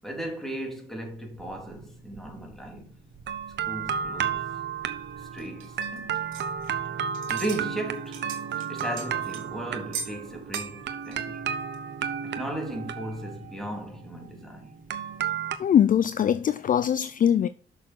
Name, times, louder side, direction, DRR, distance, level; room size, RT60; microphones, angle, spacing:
voice 1, 0.0-3.0 3.7-4.5 5.2-6.2 7.3-8.2 8.7-11.4 12.2-14.7, right 1 dB, ahead, 3.3 m, -36 dB
sound 1, 1.4-2.8 3.1-15.6, right 7 dB, 60° right, 0.9 m, -33 dB
sound 2, 5.4-6.9 7.1-7.7 7.9-9.5 9.9-10.2 10.5-10.8 11.1-11.2 11.7-11.8, right 6 dB, 85° right, 1.9 m, -39 dB
voice 2, 15.6-17.5, left 9 dB, 45° left, 0.5 m, -22 dB
6.8 x 6.1 x 6.2 m
cardioid pair, 90°, 20 cm